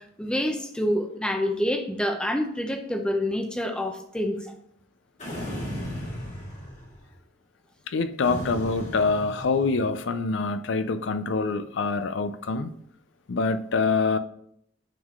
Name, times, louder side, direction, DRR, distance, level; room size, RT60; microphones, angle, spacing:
voice 1, 0.0-4.4, left 1 dB, 5° left, 4 dB, 0.6 m, -27 dB
sound 1, 5.2-7.1 8.2-10.0, equal, 40° left, 1.7 m, -36 dB
voice 2, 7.9-12.7 13.3-14.2, left 4 dB, 80° left, 11 dB, 0.5 m, -25 dB
9.2 x 3.7 x 3.6 m, 0.70 s
head